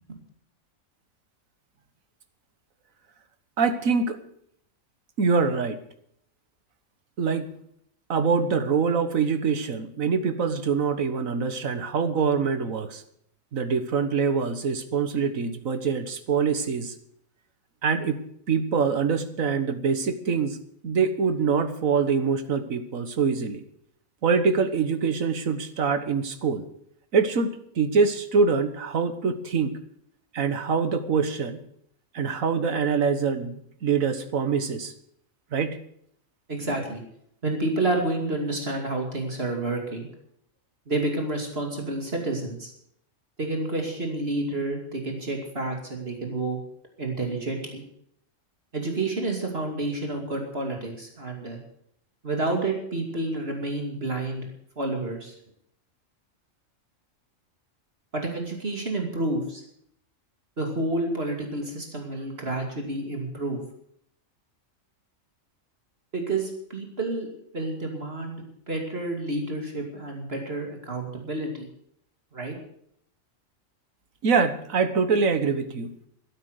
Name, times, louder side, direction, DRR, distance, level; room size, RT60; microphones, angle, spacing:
voice 1, 3.6-4.2 5.2-5.8 7.2-7.5 8.1-13.0 13.5-16.9 17.8-18.2 18.5-20.6 20.8-23.6 24.2-26.7 27.1-29.8 30.3-31.6 32.1-34.9 35.5-35.8 74.2-75.9, right 5 dB, 85° right, 10 dB, 1.7 m, -24 dB
voice 2, 36.5-37.0 37.4-40.1 40.9-42.7 43.4-46.6 47.0-47.8 48.7-51.6 52.2-54.5 54.8-55.3 58.1-59.6 60.6-63.6 66.1-67.3 67.5-71.7 72.3-72.5, right 2 dB, 50° right, 2 dB, 2.8 m, -29 dB
13.0 x 12.0 x 6.6 m, 0.69 s
omnidirectional pair, 1.4 m